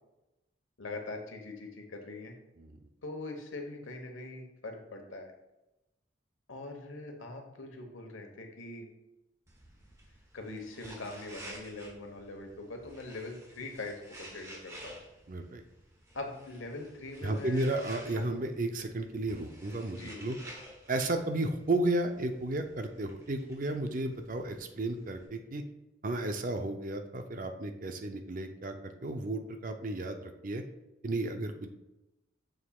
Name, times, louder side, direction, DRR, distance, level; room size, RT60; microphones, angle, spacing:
voice 1, 0.8-2.3 3.0-5.3 6.5-8.9 10.3-15.0 16.1-18.3 19.9-20.4, left 2 dB, 85° left, 3 dB, 1.2 m, -42 dB
sound 1, 9.5-25.3, right 1 dB, 15° right, 1.0 m, -52 dB
voice 2, 15.3-15.6 17.2-20.4 20.9-25.6 26.0-30.6 31.0-31.7, right 2 dB, 45° right, 6 dB, 0.5 m, -33 dB
7.2 x 6.5 x 2.4 m, 0.97 s
head